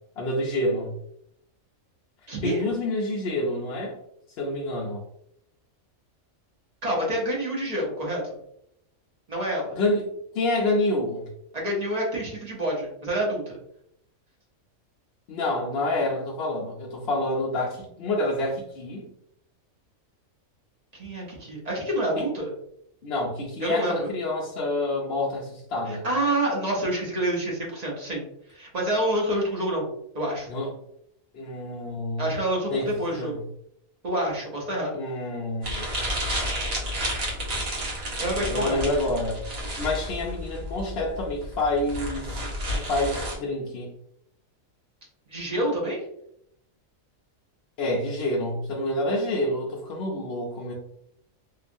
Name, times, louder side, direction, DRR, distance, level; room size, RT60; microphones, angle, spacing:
voice 1, 0.2-1.0 2.4-4.0 4.4-5.0 9.7-11.3 15.3-19.1 22.2-22.3 23.0-26.1 30.5-30.7 31.3-32.3 32.7-33.4 34.9-36.0 38.5-39.5 39.8-42.4 42.7-43.9 47.8-50.7, left 1 dB, 60° left, -4 dB, 0.7 m, -28 dB
voice 2, 2.3-2.6 6.8-8.2 9.3-9.8 11.5-13.6 20.9-22.5 23.6-24.1 25.9-28.2 28.5-29.8 30.1-30.5 32.2-33.4 34.0-35.0 38.2-38.8 45.3-46.0, right 1 dB, 35° right, -3 dB, 0.8 m, -27 dB
sound 1, 35.6-43.4, equal, 80° right, 1.4 m, -31 dB
2.8 x 2.3 x 2.5 m, 0.74 s
omnidirectional pair, 1.4 m